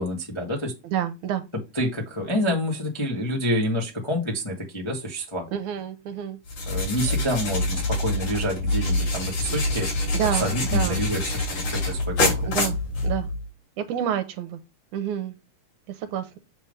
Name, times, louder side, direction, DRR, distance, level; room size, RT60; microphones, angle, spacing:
voice 1, 0.0-0.7 1.7-5.5 6.7-9.9 10.4-12.5, equal, 30° left, 0.5 m, -28 dB
voice 2, 0.8-1.4 5.5-6.4 10.1-11.0 12.4-13.3 13.8-14.6 14.9-15.4 16.0-16.3, right 10 dB, 75° right, 2.1 m, -28 dB
sound 1, 6.5-13.5, left 2 dB, 70° left, 4.6 m, -26 dB
7.2 x 3.5 x 5.4 m
omnidirectional pair, 3.7 m